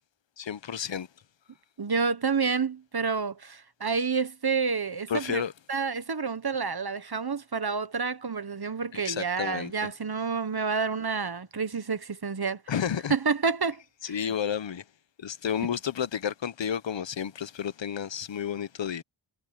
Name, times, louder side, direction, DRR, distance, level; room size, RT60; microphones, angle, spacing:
voice 1, 0.4-1.1 5.1-5.5 8.9-9.7 12.7-13.1 14.0-14.8 15.2-19.0, left 8 dB, 65° left, 0.7 m, -31 dB
voice 2, 1.8-5.4 5.7-12.6 13.1-14.3, right 5 dB, 50° right, 1.1 m, -29 dB
wide cardioid pair, 60°, 48 cm